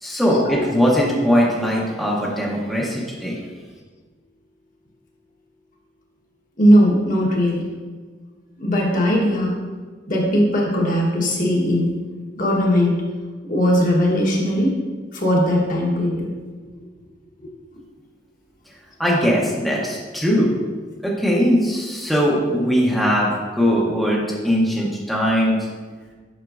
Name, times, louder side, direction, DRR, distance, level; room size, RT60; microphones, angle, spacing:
voice 1, 0.0-3.4 19.0-20.5 21.0-25.6, equal, ahead, -5 dB, 0.8 m, -20 dB
voice 2, 6.6-7.6 8.6-9.6 10.1-11.9 12.4-13.0 13.5-14.7 15.1-16.3, equal, 45° left, -2 dB, 1.2 m, -18 dB
7.6 x 5.9 x 2.5 m, 1.5 s
head